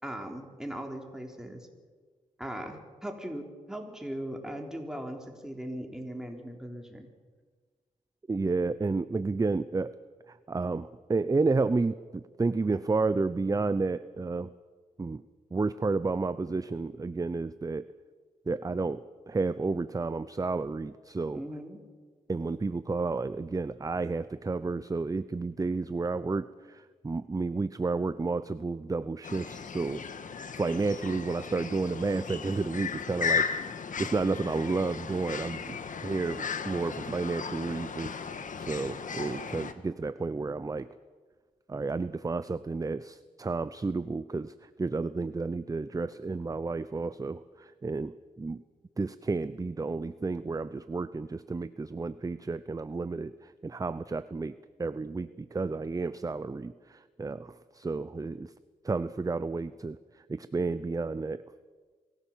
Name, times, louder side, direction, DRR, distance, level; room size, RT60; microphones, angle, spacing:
voice 1, 0.0-1.7 2.4-7.1 21.3-21.8, right 1 dB, 5° right, 2 dB, 3.9 m, -39 dB
voice 2, 8.3-10.0 10.3-14.5 15.0-15.2 15.5-17.9 18.5-21.4 22.3-30.0 30.6-33.6 34.0-40.9 41.7-48.6 49.0-58.5 58.8-60.0 60.3-61.4, right 3 dB, 25° right, 14 dB, 0.6 m, -31 dB
sound 1, 29.2-39.7, left 6 dB, 65° left, 1.5 m, -36 dB
24.0 x 16.0 x 7.4 m, 1.5 s
cardioid pair, 65°, 15 cm